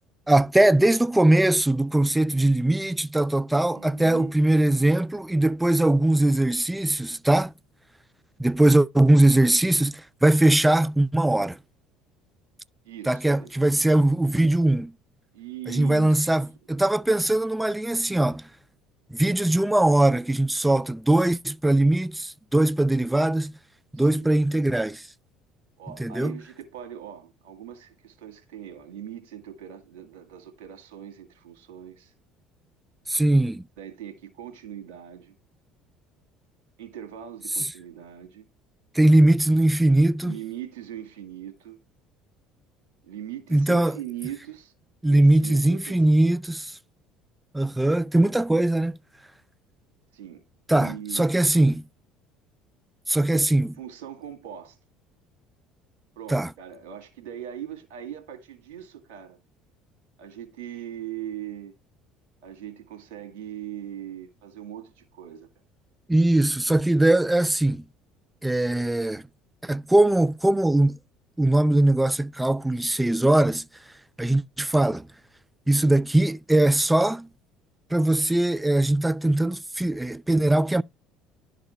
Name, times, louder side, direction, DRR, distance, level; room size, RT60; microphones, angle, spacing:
voice 1, 0.3-7.5 8.4-11.6 13.1-14.9 15.7-18.4 19.1-23.5 23.9-25.0 26.0-26.4 33.1-33.6 38.9-40.3 43.5-44.0 45.0-46.7 47.5-49.0 50.7-51.8 53.1-53.7 56.3-56.5 66.1-67.8 68.4-69.2 69.6-71.0 71.4-73.6 74.2-75.1 75.7-77.3 77.9-80.8, right 1 dB, 10° right, 0.4 m, -21 dB
voice 2, 3.7-4.3 12.8-13.6 15.3-16.3 23.9-24.3 25.8-32.1 33.8-35.3 36.8-38.5 40.2-41.8 43.0-44.7 45.0-46.0 50.1-50.4 50.7-51.2 53.3-54.8 56.2-59.4 60.2-61.7 62.4-65.5, right 11 dB, 80° right, 2.1 m, -40 dB
11.0 x 4.2 x 4.4 m
hypercardioid pair, 70°, 0 cm